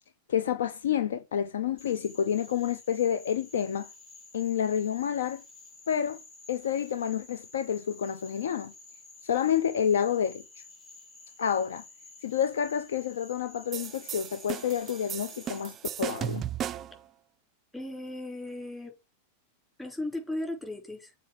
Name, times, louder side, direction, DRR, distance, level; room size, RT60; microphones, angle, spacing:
voice 1, 0.3-3.9 4.3-5.4 5.9-6.2 6.5-8.7 9.2-10.4 11.4-11.8 12.2-16.4, left 8 dB, 65° left, 0.6 m, -29 dB
Frog, 1.8-15.6, left 3 dB, 30° left, 2.5 m, -51 dB
sound 1, 13.7-17.0, right 9 dB, 30° right, 0.3 m, -36 dB
voice 2, 17.7-18.9 19.8-21.1, left 1 dB, 10° left, 4.0 m, -36 dB
7.0 x 4.4 x 5.9 m
figure-of-eight pair, 90°, 0 cm